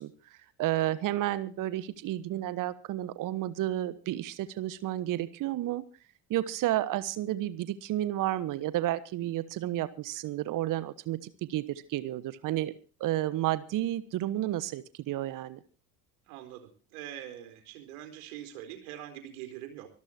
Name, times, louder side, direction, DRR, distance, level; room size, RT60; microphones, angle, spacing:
voice 1, 0.0-5.9 6.3-12.7 13.0-15.6, right 14 dB, 40° right, 15 dB, 1.2 m, -31 dB
voice 2, 16.3-19.9, right 11 dB, 65° right, 6 dB, 4.2 m, -44 dB
25.0 x 14.0 x 2.9 m, 0.36 s
figure-of-eight pair, 65°, 47 cm